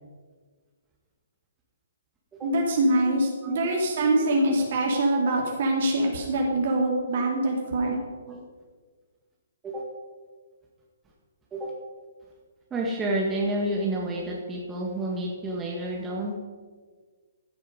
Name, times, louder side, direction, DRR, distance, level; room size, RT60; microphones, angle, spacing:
voice 1, 2.4-7.9, right 1 dB, 50° right, 0 dB, 2.6 m, -24 dB
voice 2, 12.7-16.3, right 1 dB, 15° right, -2 dB, 1.7 m, -30 dB
15.0 x 8.5 x 5.3 m, 1.5 s
figure-of-eight pair, 125°, 0 cm